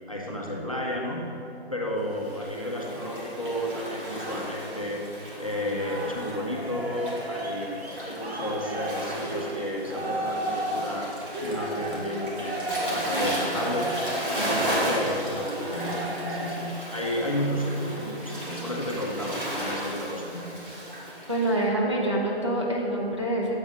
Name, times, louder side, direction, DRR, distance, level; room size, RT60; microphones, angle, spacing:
voice 1, 0.1-1.2 1.7-5.0 5.4-11.1 11.4-13.9 14.3-20.7, left 1 dB, 35° left, -2 dB, 0.5 m, -32 dB
Waves surf, 2.1-21.5, right 1 dB, 50° right, 1.5 m, -35 dB
sound 1, 5.8-16.5, right 1 dB, 70° right, 1.1 m, -33 dB
voice 2, 21.3-23.5, right 1 dB, 25° right, -4 dB, 0.5 m, -26 dB
7.2 x 3.4 x 4.9 m, 2.8 s
hypercardioid pair, 175°, 33 cm